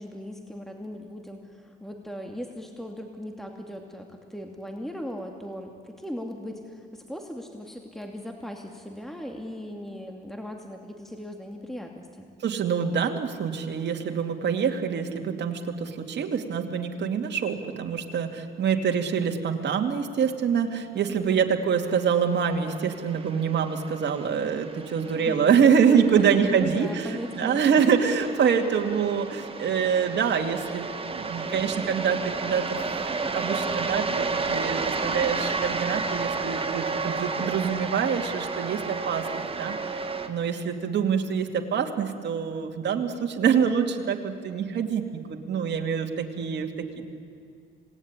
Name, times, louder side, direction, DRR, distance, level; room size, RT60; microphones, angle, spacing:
voice 1, 0.0-12.3 21.1-21.5 25.1-25.4 26.1-27.9, equal, ahead, 3 dB, 2.6 m, -38 dB
voice 2, 12.4-30.9 31.1-32.8 33.3-39.8 40.3-47.0, right 7 dB, 60° right, 3 dB, 2.6 m, -25 dB
sound 1, 22.0-40.3, right 4 dB, 30° right, 2.2 m, -32 dB
27.0 x 19.0 x 9.9 m, 2.3 s
cardioid pair, 90°, 20 cm